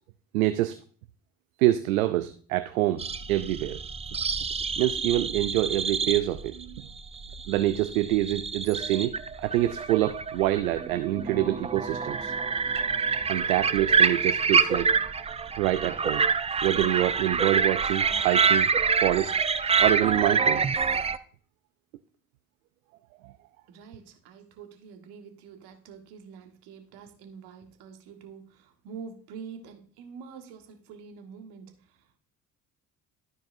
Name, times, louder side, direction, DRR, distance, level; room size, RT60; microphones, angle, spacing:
voice 1, 0.3-0.8 1.6-3.8 4.8-6.8 7.5-12.3 13.3-14.9 15.6-16.3 16.6-18.7 19.0-19.3 19.8-20.6 23.2-23.3, right 15 dB, 85° right, 10 dB, 0.5 m, -26 dB
sound 1, 3.0-21.2, right 5 dB, 15° right, 0.5 m, -26 dB
voice 2, 23.7-32.1, right 6 dB, 70° right, 4 dB, 1.5 m, -46 dB
13.5 x 4.6 x 2.6 m, 0.43 s
hypercardioid pair, 55°, 40 cm